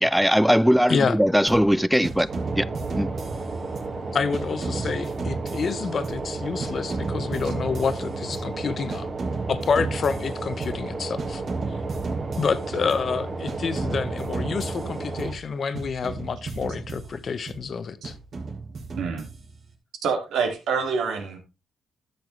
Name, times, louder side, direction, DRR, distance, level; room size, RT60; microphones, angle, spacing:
voice 1, 0.0-2.3 2.6-2.7 2.9-3.1, equal, ahead, 0.4 m, -20 dB
sound 1, 1.5-1.8 2.0-4.0 4.3-6.4 6.6-8.6 8.9-10.9 11.2-13.1 13.5-15.5 15.7-17.6 18.0-19.7, right 3 dB, 60° right, 2.7 m, -34 dB
sound 2, 2.3-15.3, right 3 dB, 45° right, 2.0 m, -33 dB
voice 2, 4.1-9.1 9.5-11.4 11.7-11.8 12.3-18.1, left 5 dB, 50° left, 0.9 m, -28 dB
voice 3, 20.0-21.4, right 5 dB, 90° right, 2.4 m, -26 dB
12.0 x 6.8 x 3.2 m
cardioid pair, 105°, 0 cm